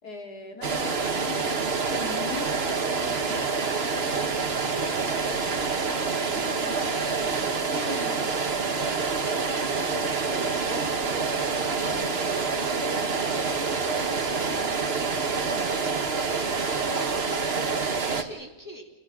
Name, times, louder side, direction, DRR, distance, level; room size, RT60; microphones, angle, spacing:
voice 1, 0.0-3.5 3.8-8.9 9.3-11.3 11.8-16.2, left 4 dB, 90° left, 3 dB, 3.6 m, -42 dB
sound 1, 0.6-18.2, right 4 dB, 40° right, 1.6 m, -27 dB
voice 2, 16.6-18.9, equal, 10° right, 1 dB, 3.4 m, -42 dB
29.0 x 21.5 x 6.2 m, 1.1 s
omnidirectional pair, 1.6 m